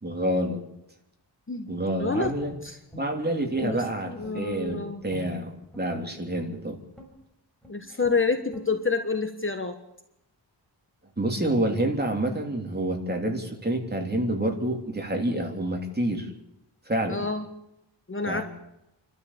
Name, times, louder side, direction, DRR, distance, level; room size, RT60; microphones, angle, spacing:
voice 1, 0.0-0.6 1.7-2.5 2.9-6.8 11.2-16.3 16.9-17.3 18.3-18.4, right 1 dB, 20° right, 2 dB, 3.2 m, -28 dB
voice 2, 2.0-2.3 2.6-2.8 3.6-3.7 4.1-5.0 7.7-9.8 17.1-17.4 18.1-18.4, left 4 dB, 30° left, 6 dB, 1.4 m, -28 dB
Guitar, 2.2-3.9 4.2-5.9 6.3-6.6 6.9-7.2 7.6-7.7 8.0-8.2 8.5-8.7, left 1 dB, ahead, 6.9 m, -45 dB
29.5 x 12.5 x 7.4 m, 0.84 s
wide cardioid pair, 145°, 43 cm